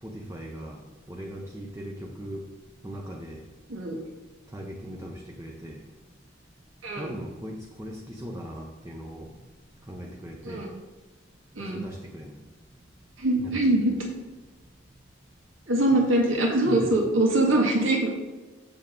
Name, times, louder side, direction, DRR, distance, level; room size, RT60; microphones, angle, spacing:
voice 1, 0.0-0.8 1.1-2.5 2.8-3.4 4.5-5.8 7.0-9.3 9.9-10.7 11.6-12.4 13.4-13.7 15.9-16.0 16.7-17.0, equal, 15° right, -1 dB, 0.7 m, -39 dB
voice 2, 13.2-14.0 15.7-18.1, right 1 dB, 85° right, -2 dB, 1.9 m, -23 dB
7.1 x 7.0 x 3.7 m, 1.3 s
head